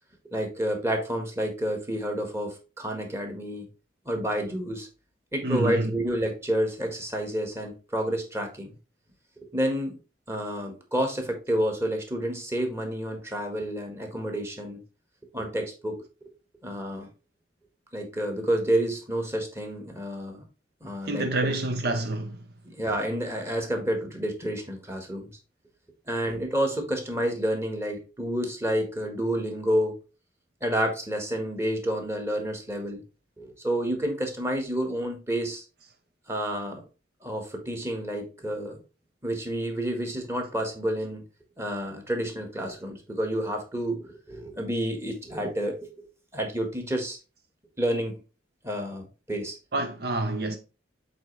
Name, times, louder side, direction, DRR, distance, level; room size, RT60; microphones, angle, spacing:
voice 1, 0.2-3.7 4.0-4.9 5.3-8.7 9.4-10.0 10.3-14.8 15.3-16.3 16.6-17.1 17.9-20.4 20.8-21.5 22.6-25.3 26.1-30.0 30.6-33.0 33.4-35.6 36.3-36.8 37.2-38.8 39.2-41.2 41.6-46.1 46.3-47.2 47.8-48.2 48.6-49.6, equal, 15° right, 1.6 m, -29 dB
voice 2, 5.4-6.0 21.1-22.4 49.7-50.6, right 2 dB, 60° right, 0.7 m, -27 dB
7.9 x 4.2 x 3.3 m
head